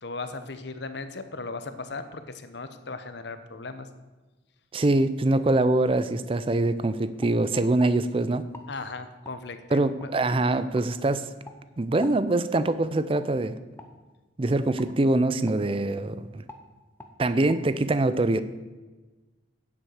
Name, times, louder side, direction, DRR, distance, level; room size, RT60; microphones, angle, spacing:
voice 1, 0.0-3.9 8.7-10.1, left 3 dB, 60° left, 10 dB, 0.9 m, -37 dB
voice 2, 4.7-8.4 9.7-11.3 11.8-13.6 14.4-16.4 17.2-18.4, right 2 dB, 30° right, 13 dB, 0.5 m, -24 dB
sound 1, 6.0-6.2 6.6-6.8 7.2-7.9 8.5-8.7 9.2-9.4 10.0-10.1 10.8-10.9 11.4-11.6 12.0-12.2 12.6-12.7 13.1-13.3 13.8-13.9 14.8-14.9 15.5-15.6 15.9-16.1 16.5-16.6 17.0-17.1 17.5-17.6, left 1 dB, 10° left, 0.8 m, -46 dB
9.2 x 7.9 x 6.5 m, 1.2 s
head